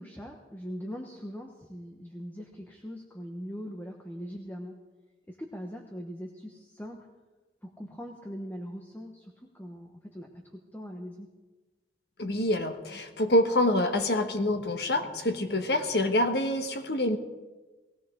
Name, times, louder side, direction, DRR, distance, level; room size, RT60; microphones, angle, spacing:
voice 1, 0.0-4.8 5.3-7.1 7.6-11.3, equal, 10° left, 2 dB, 1.1 m, -41 dB
voice 2, 12.2-17.2, left 1 dB, 65° left, 6 dB, 1.4 m, -26 dB
19.0 x 16.5 x 3.8 m, 1.2 s
head